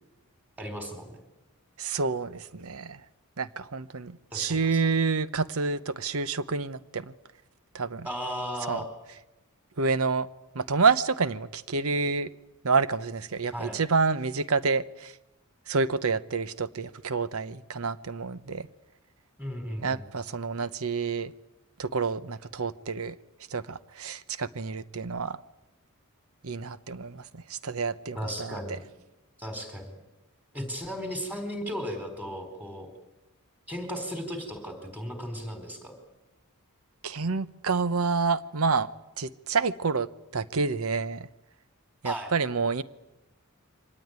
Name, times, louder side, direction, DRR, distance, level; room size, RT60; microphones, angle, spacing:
voice 1, 0.6-1.2 4.3-4.8 8.0-8.9 13.5-13.8 19.4-20.1 28.1-28.8 29.4-30.0 30.5-32.9 33.7-35.9 42.0-42.3, equal, 10° right, 4.3 m, -35 dB
voice 2, 1.8-3.0 3.4-7.1 7.7-8.1 8.7-8.8 9.8-10.3 10.5-12.3 12.6-15.1 15.7-18.7 19.8-21.3 21.8-23.1 23.5-25.4 26.4-28.6 37.0-38.9 39.2-41.3 42.0-42.8, right 4 dB, 65° right, 0.9 m, -28 dB
24.5 x 18.5 x 9.5 m
head